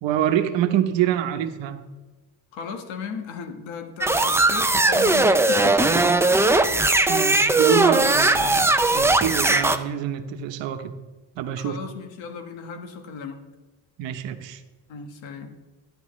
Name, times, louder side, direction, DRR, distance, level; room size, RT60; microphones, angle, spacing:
voice 1, 0.0-1.8 5.9-6.2 7.1-10.9 11.4-11.8 14.0-14.6, right 10 dB, 75° right, 7 dB, 1.0 m, -26 dB
voice 2, 2.5-6.0 11.6-13.4 14.9-15.5, left 6 dB, 80° left, 6 dB, 1.4 m, -35 dB
sound 1, 4.0-9.8, right 2 dB, 5° right, 0.4 m, -19 dB
13.5 x 10.5 x 3.1 m, 1.2 s
cardioid pair, 120°, 45 cm